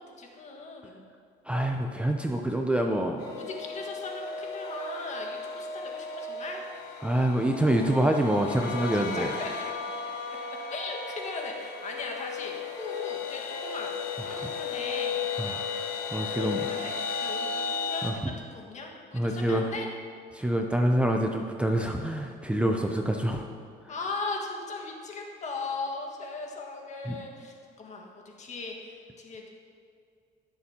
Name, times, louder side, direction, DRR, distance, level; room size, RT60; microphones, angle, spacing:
voice 1, 0.2-1.0 3.5-6.6 7.1-7.9 9.0-9.5 10.1-10.2 10.7-15.2 16.3-18.1 18.4-19.9 23.9-29.5, left 3 dB, 45° left, 0 dB, 1.7 m, -38 dB
voice 2, 1.5-3.3 7.0-9.3 14.3-14.5 15.4-16.7 18.0-18.2 19.1-19.7 20.3-23.4 27.0-27.2, right 1 dB, 5° right, 2 dB, 0.6 m, -26 dB
sound 1, 3.2-18.1, left 5 dB, 75° left, 1.5 m, -35 dB
17.5 x 7.0 x 2.9 m, 2.4 s
cardioid pair, 110°, 17 cm